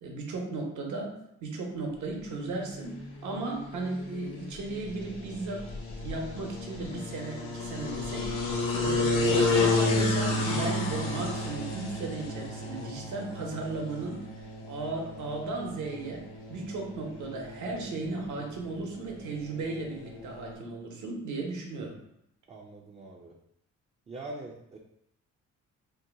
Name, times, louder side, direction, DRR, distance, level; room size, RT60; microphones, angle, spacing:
voice 1, 0.0-1.1 1.4-5.7 6.0-14.2 14.6-16.2 16.5-22.0, right 3 dB, 70° right, 0 dB, 0.9 m, -36 dB
sound 1, 2.5-20.5, left 2 dB, 85° left, 0.8 m, -32 dB
voice 2, 22.5-23.3 24.1-24.8, right 2 dB, 20° right, -1 dB, 0.4 m, -43 dB
2.7 x 2.2 x 3.7 m, 0.78 s
cardioid pair, 90°, 30 cm